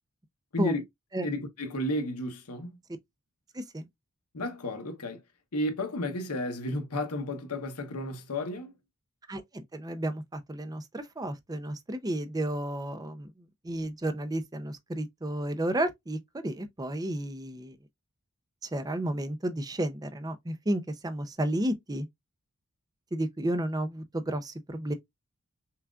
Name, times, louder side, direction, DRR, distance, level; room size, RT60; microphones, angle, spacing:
voice 1, 1.2-2.7 4.3-5.2 5.5-8.7, left 1 dB, 85° left, 1.0 m, -32 dB
voice 2, 3.5-3.9 9.3-17.8 18.6-22.1 23.1-24.9, right 1 dB, 15° right, 0.5 m, -32 dB
5.7 x 2.4 x 2.4 m
head